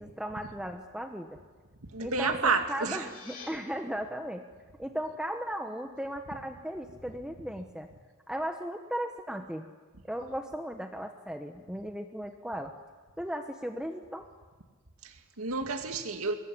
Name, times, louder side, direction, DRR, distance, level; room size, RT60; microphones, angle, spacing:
voice 1, 0.0-1.4 2.0-4.4 4.8-7.9 8.3-9.6 10.0-12.7 13.2-14.3, equal, 5° right, 1.1 m, -36 dB
voice 2, 1.9-3.0 15.0-16.3, right 4 dB, 85° right, 2.2 m, -30 dB
sound 1, 2.7-3.5, left 5 dB, 45° left, 7.5 m, -48 dB
24.0 x 21.5 x 10.0 m
head